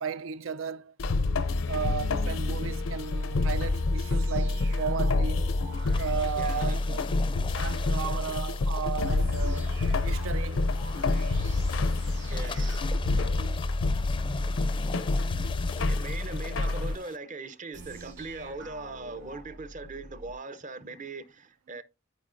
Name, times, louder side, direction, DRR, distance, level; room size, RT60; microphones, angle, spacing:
voice 1, 0.0-0.9 1.7-5.5 6.0-7.0 7.5-10.7 13.3-13.6, right 7 dB, 80° right, 0.5 m, -35 dB
sound 1, 1.0-16.9, left 2 dB, 75° left, 0.5 m, -28 dB
sound 2, 4.0-7.3 9.2-14.4 17.7-20.4, right 1 dB, 65° right, 2.1 m, -44 dB
sound 3, 5.8-17.2, left 3 dB, 25° left, 0.4 m, -41 dB
voice 2, 6.4-6.8 12.2-12.9 15.8-21.8, right 3 dB, 40° right, 0.7 m, -40 dB
12.5 x 4.8 x 2.5 m
head